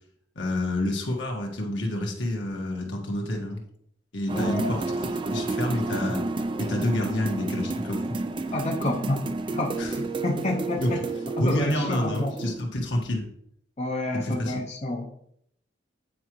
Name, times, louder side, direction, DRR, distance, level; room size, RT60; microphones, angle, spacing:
voice 1, 0.3-3.6 4.1-4.8 5.3-6.2 6.6-8.1 9.8-9.9 10.8-10.9 11.4-13.3 14.2-14.6, left 1 dB, 70° left, 1 dB, 1.6 m, -28 dB
voice 2, 4.3-4.8 8.5-11.0 11.4-12.4 13.8-15.1, left 1 dB, 35° left, 0 dB, 0.7 m, -29 dB
sound 1, 4.3-12.6, right 2 dB, 25° right, 0.4 m, -31 dB
9.3 x 4.9 x 3.1 m, 0.70 s
head